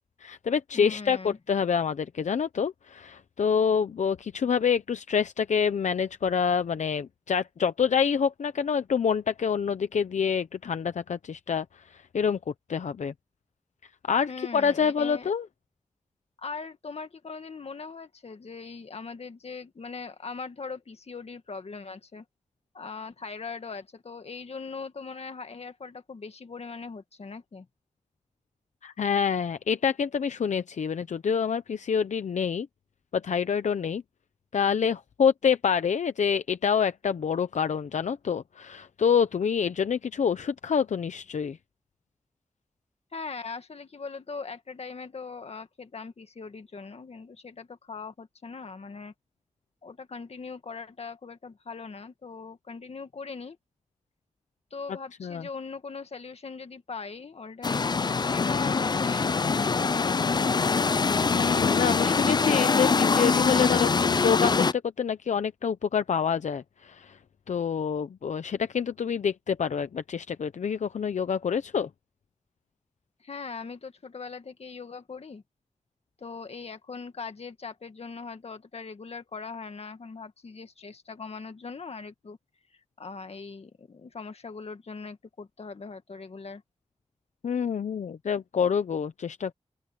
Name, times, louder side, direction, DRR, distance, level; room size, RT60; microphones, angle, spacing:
voice 1, 0.2-12.4 12.7-13.1 14.1-15.5 28.8-32.7 33.1-34.0 34.5-41.6 55.2-55.5 61.3-67.2 67.5-71.9 87.4-89.5, left 6 dB, 90° left, 0.7 m, -27 dB
voice 2, 0.7-1.4 14.3-15.3 16.4-22.2 22.7-27.7 43.1-49.1 49.8-53.6 54.7-60.8 73.2-75.4 76.2-82.4 83.0-86.6, left 4 dB, 60° left, 2.0 m, -40 dB
sound 1, 57.6-64.7, left 4 dB, 35° left, 0.4 m, -24 dB
open air
wide cardioid pair, 100°, 12 cm